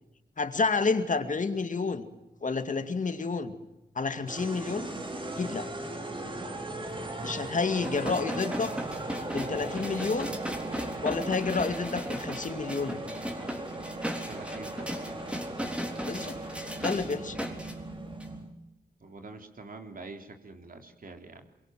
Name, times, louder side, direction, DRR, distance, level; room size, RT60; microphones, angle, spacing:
voice 1, 0.4-2.1 2.4-3.5 4.0-4.9 5.4-5.7 7.2-8.7 9.3-10.3 11.0-13.0 16.0-16.4 16.8-17.4, left 4 dB, 50° left, 8 dB, 2.3 m, -29 dB
sound 1, 4.3-18.5, right 2 dB, 30° right, 3.8 m, -38 dB
sound 2, 7.8-17.7 18.2-18.3, equal, 5° right, 3.8 m, -37 dB
voice 2, 14.3-15.0 19.0-21.5, right 3 dB, 55° right, 4 dB, 3.5 m, -45 dB
24.0 x 23.0 x 7.7 m, 0.94 s
wide cardioid pair, 100°, 17 cm